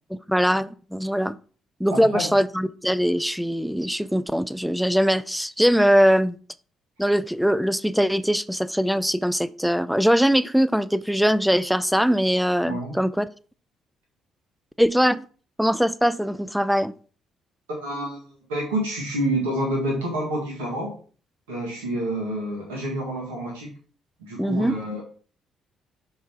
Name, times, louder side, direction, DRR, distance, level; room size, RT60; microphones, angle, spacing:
voice 1, 0.1-1.4 1.8-6.4 7.0-13.3 14.8-15.2 15.6-16.9 24.4-24.7, equal, ahead, 0.4 m, -21 dB
voice 2, 1.9-2.3 12.7-13.0 17.7-21.0 21.5-23.7 24.2-25.0, right 1 dB, 70° right, 1.8 m, -28 dB
6.4 x 4.0 x 4.4 m
figure-of-eight pair, 45°, 0 cm